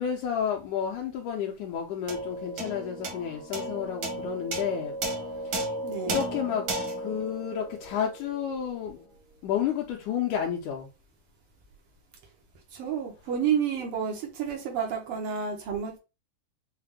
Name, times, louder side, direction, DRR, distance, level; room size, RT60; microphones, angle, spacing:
voice 1, 0.0-5.0 5.4-5.7 6.1-6.7 7.0-9.0 9.4-10.9, left 8 dB, 80° left, 1.9 m, -31 dB
sound 1, 2.1-8.7, right 1 dB, 65° right, 1.2 m, -34 dB
voice 2, 5.8-6.2 12.7-16.0, right 7 dB, 85° right, 1.2 m, -30 dB
5.6 x 2.1 x 3.6 m
omnidirectional pair, 3.8 m